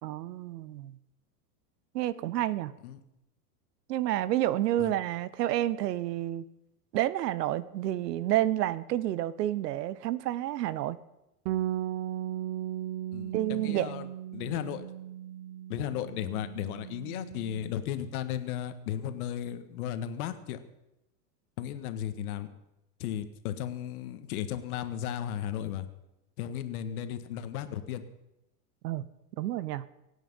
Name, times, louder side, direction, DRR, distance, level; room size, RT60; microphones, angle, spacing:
voice 1, 0.0-0.9 1.9-2.7 3.9-6.4 6.9-11.0 13.3-13.9 28.8-29.0 29.4-29.8, right 13 dB, 80° right, 18 dB, 1.0 m, -29 dB
Bass guitar, 11.5-17.7, right 12 dB, 45° right, 0.6 m, -37 dB
voice 2, 13.1-14.1 14.3-14.9 15.7-20.6 21.6-22.5 23.0-25.9 26.4-28.0, left 10 dB, 65° left, 10 dB, 1.7 m, -35 dB
24.5 x 9.2 x 5.6 m, 0.91 s
supercardioid pair, 135°, 48 cm